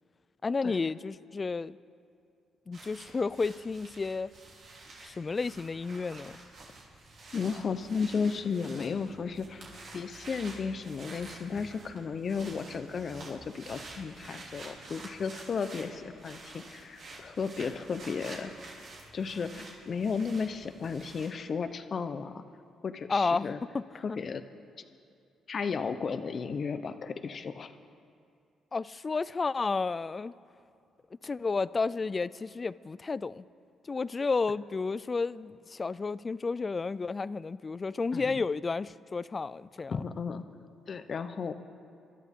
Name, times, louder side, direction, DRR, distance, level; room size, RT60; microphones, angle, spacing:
voice 1, 0.4-1.8 2.7-4.3 5.0-6.4 23.1-23.8 24.1-24.2 28.7-30.3 31.2-33.5 33.9-39.9, left 4 dB, 30° left, 18 dB, 0.3 m, -31 dB
sound 1, 2.7-21.3, right 2 dB, 65° right, 3.4 m, -49 dB
voice 2, 7.3-9.6 9.9-18.5 19.1-22.3 22.8-23.6 24.0-24.4 25.5-27.7 38.1-38.4 39.9-40.4 40.9-41.5, left 5 dB, 45° left, 10 dB, 0.8 m, -34 dB
25.0 x 13.0 x 3.7 m, 2.3 s
cardioid pair, 90°, 0 cm